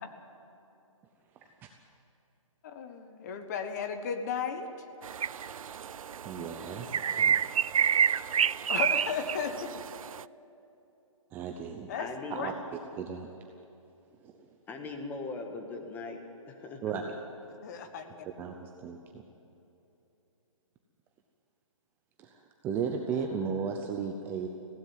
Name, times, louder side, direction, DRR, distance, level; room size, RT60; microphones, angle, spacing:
voice 1, 1.3-1.7 5.4-7.4 11.3-11.9 12.3-13.3 14.2-14.5 16.8-17.2 18.4-19.3 22.2-24.5, right 6 dB, 10° right, 3 dB, 0.6 m, -36 dB
voice 2, 2.6-4.7 8.7-9.7 11.9-12.5 17.6-18.3, left 6 dB, 30° left, 7 dB, 1.3 m, -35 dB
sound 1, 5.0-10.2, right 8 dB, 80° right, 0.4 m, -29 dB
voice 3, 12.0-12.5 14.7-16.2 16.5-16.8, left 3 dB, 10° left, 4 dB, 1.5 m, -39 dB
18.5 x 16.5 x 9.6 m, 2.9 s
hypercardioid pair, 160°, 17 cm